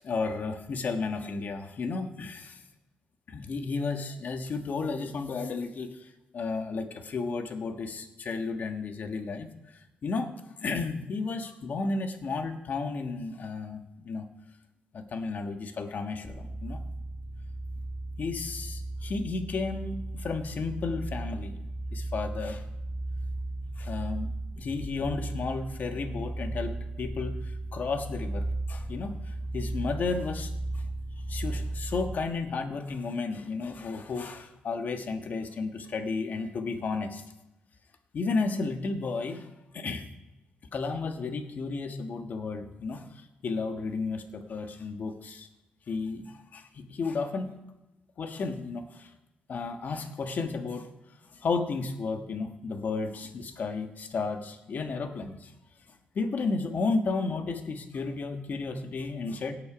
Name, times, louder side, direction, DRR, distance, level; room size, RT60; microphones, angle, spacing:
voice 1, 0.0-2.6 3.3-6.0 6.3-9.5 10.0-10.3 10.6-14.2 14.9-16.8 18.2-21.6 21.9-22.6 23.8-30.5 31.3-37.2 38.1-39.5 39.7-40.0 40.7-43.1 43.4-45.5 45.9-47.5 48.2-49.1 49.5-50.9 51.3-55.5 56.1-59.5, left 4 dB, 50° left, 7 dB, 1.4 m, -33 dB
sound 1, 16.2-32.4, right 2 dB, 5° left, 1.3 m, -36 dB
18.0 x 6.7 x 5.1 m, 1.0 s
cardioid pair, 100°, 4 cm